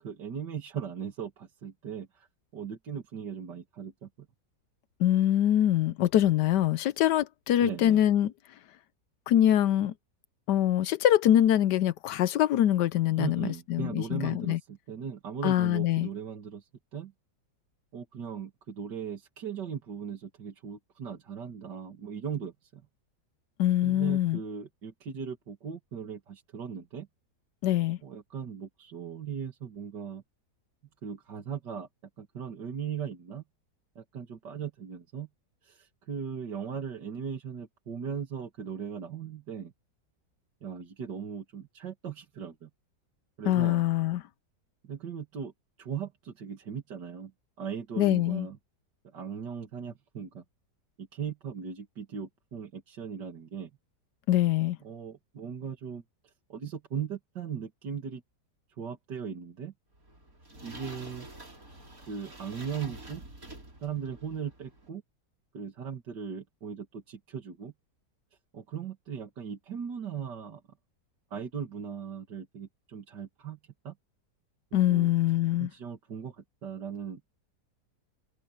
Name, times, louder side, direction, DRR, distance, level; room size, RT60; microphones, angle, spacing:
voice 1, 0.0-2.3 2.5-4.3 7.6-8.0 13.2-17.1 17.9-22.8 23.8-27.1 28.0-30.2 31.0-31.9 32.2-33.4 34.0-35.3 35.6-39.7 40.6-42.7 43.4-43.8 44.8-45.5 45.8-47.3 47.6-48.6 49.0-50.4 51.0-53.7 54.8-58.2 58.8-59.7 60.6-61.3 62.1-63.2 63.8-65.0 65.5-67.7 68.5-70.6 71.3-73.6 73.8-73.9 74.7-75.1 75.6-77.2, right 7 dB, 85° right, 2.6 m, -38 dB
voice 2, 5.0-8.3 9.3-9.9 10.5-14.6 15.4-16.1 23.6-24.4 27.6-28.0 43.5-44.2 48.0-48.5 54.3-54.8 74.7-75.7, left 12 dB, 80° left, 1.3 m, -24 dB
sound 1, 59.9-64.9, right 2 dB, 55° right, 5.6 m, -48 dB
omnidirectional pair, 1.8 m